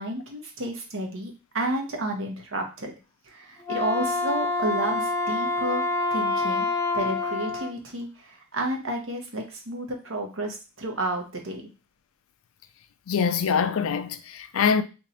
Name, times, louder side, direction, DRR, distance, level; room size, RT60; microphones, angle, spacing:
voice 1, 0.0-3.0 3.3-5.8 6.1-6.7 6.9-11.6, right 1 dB, 65° right, 0.9 m, -31 dB
Wind instrument woodwind instrument, 3.6-7.7, left 2 dB, 15° left, 0.4 m, -27 dB
voice 2, 13.1-14.8, left 6 dB, 75° left, 0.4 m, -24 dB
3.0 x 2.7 x 4.0 m
head